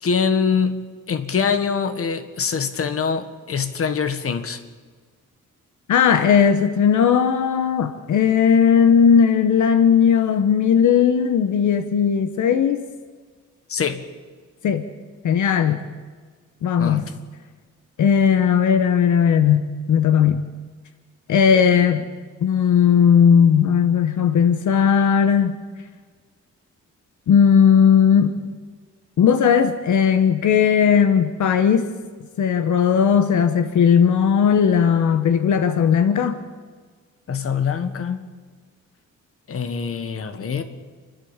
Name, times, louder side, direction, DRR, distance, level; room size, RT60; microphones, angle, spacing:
voice 1, 0.0-4.6 13.7-14.0 16.8-17.0 37.3-38.3 39.5-40.6, left 6 dB, 50° left, 10 dB, 1.5 m, -24 dB
voice 2, 5.9-12.9 14.6-14.9 15.2-15.8 16.6-17.0 18.0-20.4 21.3-22.0 22.4-25.6 27.3-28.4 29.2-31.9 32.4-36.4, left 7 dB, 75° left, 10 dB, 1.1 m, -17 dB
29.0 x 12.0 x 7.3 m, 1.5 s
wide cardioid pair, 135°, 30 cm